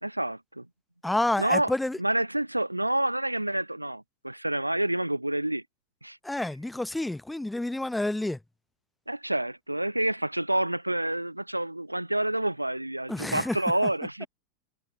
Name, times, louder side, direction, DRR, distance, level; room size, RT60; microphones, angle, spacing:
voice 1, 0.0-0.7 1.4-1.7 2.0-5.6 6.0-6.2 9.1-14.3, right 1 dB, 85° right, 0.3 m, -28 dB
voice 2, 1.0-2.0 6.2-8.4 13.1-13.6, left 1 dB, 5° left, 1.0 m, -29 dB
figure-of-eight pair, 90°, 0 cm